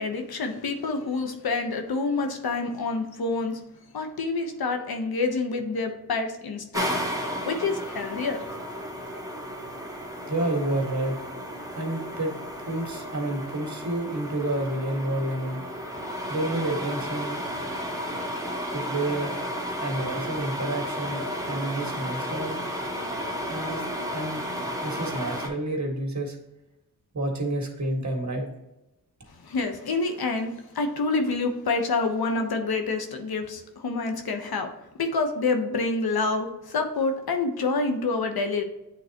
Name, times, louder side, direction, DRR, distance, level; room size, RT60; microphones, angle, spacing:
voice 1, 0.0-3.6 3.9-6.9 7.4-8.4 29.3-34.7 35.0-38.6, left 3 dB, 70° left, 5 dB, 1.1 m, -27 dB
sound 1, 6.7-25.5, equal, 10° right, 1.4 m, -33 dB
voice 2, 10.3-11.2 11.7-12.3 12.6-15.6 16.3-17.4 18.7-19.3 19.8-22.6 23.5-23.8 24.1-24.4 24.8-26.4 27.1-28.5, right 1 dB, 45° right, 1 dB, 1.8 m, -29 dB
8.6 x 3.9 x 2.9 m, 0.94 s
cardioid pair, 60°, 39 cm